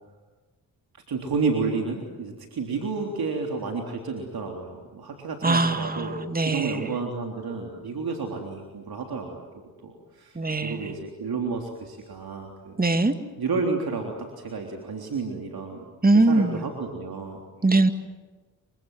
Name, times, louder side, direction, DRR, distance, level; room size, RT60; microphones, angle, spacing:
voice 1, 0.9-9.4 9.8-12.8 13.4-15.9 16.3-17.4, right 4 dB, 55° right, 2 dB, 3.6 m, -31 dB
voice 2, 5.4-7.0 10.3-11.0 12.8-13.1 16.0-16.7 17.6-17.9, right 2 dB, 20° right, 9 dB, 2.2 m, -22 dB
27.5 x 25.0 x 7.7 m, 1.3 s
hypercardioid pair, 45°, 43 cm